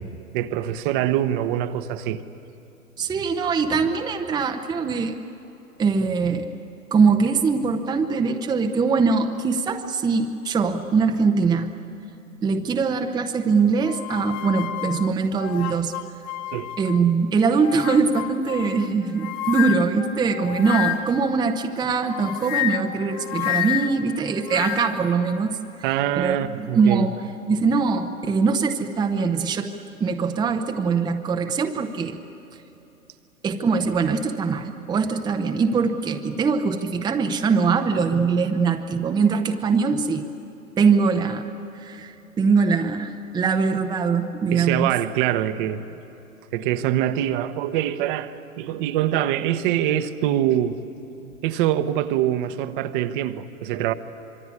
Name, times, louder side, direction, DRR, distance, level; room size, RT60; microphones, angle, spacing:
voice 1, 0.3-2.2 16.5-16.7 25.8-27.1 44.5-45.8 46.5-50.8 51.4-53.9, right 12 dB, 35° right, 10 dB, 1.1 m, -24 dB
voice 2, 3.0-5.2 5.8-6.5 6.9-11.7 12.4-15.9 16.8-25.6 26.2-27.2 27.5-29.7 30.0-32.2 33.4-40.2 40.8-44.9, right 5 dB, 10° right, 5 dB, 0.8 m, -22 dB
sound 1, 13.8-17.1 17.6-21.3 22.1-25.1, left 12 dB, 45° left, 1.4 m, -30 dB
26.0 x 22.5 x 9.7 m, 2.9 s
hypercardioid pair, 115°, 43 cm